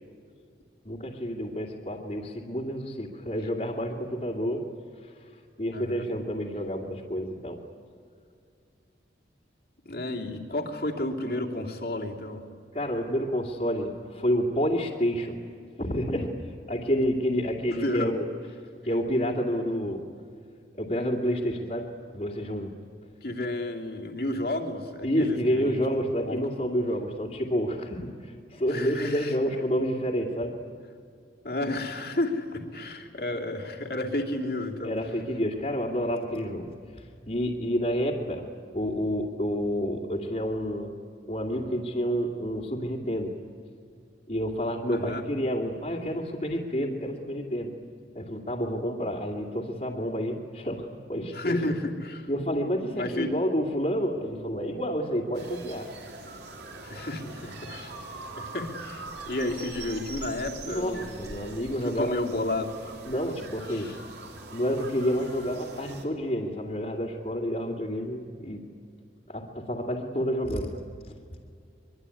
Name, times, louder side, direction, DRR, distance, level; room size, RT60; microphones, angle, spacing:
voice 1, 0.8-4.6 5.0-5.1 5.6-7.6 12.7-15.4 15.8-16.4 16.7-18.2 18.8-20.0 20.8-22.8 25.0-30.6 34.8-36.7 36.9-38.5 38.7-40.9 41.3-43.3 44.3-47.7 48.1-51.6 52.3-55.9 60.6-62.1 63.0-63.9 64.5-68.7 69.3-70.8, equal, 40° left, -4 dB, 2.5 m, -29 dB
voice 2, 5.7-6.1 9.8-12.4 17.7-18.2 23.2-25.8 26.3-26.4 28.7-29.4 31.4-34.9 44.9-45.2 51.3-52.3 52.9-53.4 56.8-58.0 58.4-61.2 61.8-62.7 63.7-64.0, left 1 dB, 55° left, 1 dB, 2.9 m, -32 dB
sound 1, 55.3-66.1, right 3 dB, 65° right, 3.5 m, -42 dB
23.5 x 23.5 x 9.9 m, 2.4 s
head